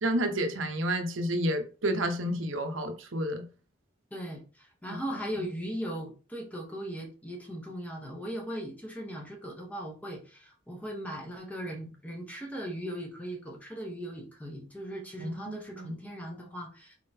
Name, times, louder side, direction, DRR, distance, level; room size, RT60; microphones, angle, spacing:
voice 1, 0.0-3.4 4.9-5.0 15.2-15.9, right 1 dB, 80° right, 0.8 m, -30 dB
voice 2, 4.1-17.0, equal, 10° left, 0.9 m, -38 dB
4.4 x 3.7 x 2.7 m
head